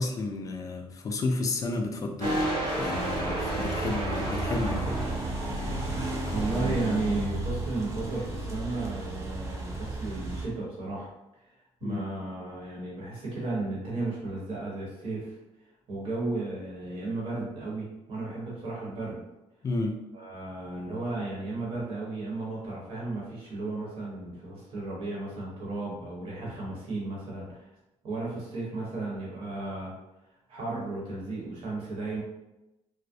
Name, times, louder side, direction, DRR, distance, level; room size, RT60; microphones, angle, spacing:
voice 1, 0.0-2.4 2.8-5.0 11.8-12.0 19.6-19.9, left 2 dB, 30° left, 4 dB, 0.3 m, -31 dB
sound 1, 2.2-7.2, right 1 dB, 85° right, 0.9 m, -32 dB
sound 2, 2.9-10.5, right 2 dB, 25° right, 0.5 m, -34 dB
voice 2, 6.3-11.1 11.8-15.4 15.9-19.2 20.1-27.6 28.0-29.9 30.5-32.2, right 2 dB, 60° right, -5 dB, 1.1 m, -34 dB
2.4 x 2.0 x 2.6 m, 0.96 s
cardioid pair, 130°, 11 cm